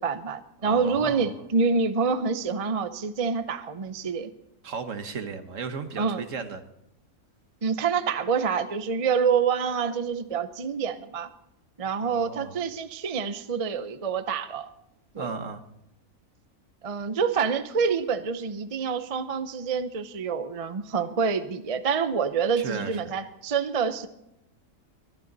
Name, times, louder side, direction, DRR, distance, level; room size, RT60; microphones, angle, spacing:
voice 1, 0.0-4.3 6.0-6.2 7.6-11.3 11.8-14.7 15.1-15.3 16.8-24.1, right 5 dB, 35° right, 10 dB, 0.6 m, -27 dB
voice 2, 0.6-1.3 4.6-6.6 12.0-12.6 15.2-15.6 22.6-23.1, right 5 dB, 65° right, 8 dB, 1.5 m, -35 dB
22.0 x 11.5 x 4.0 m, 0.83 s
omnidirectional pair, 1.4 m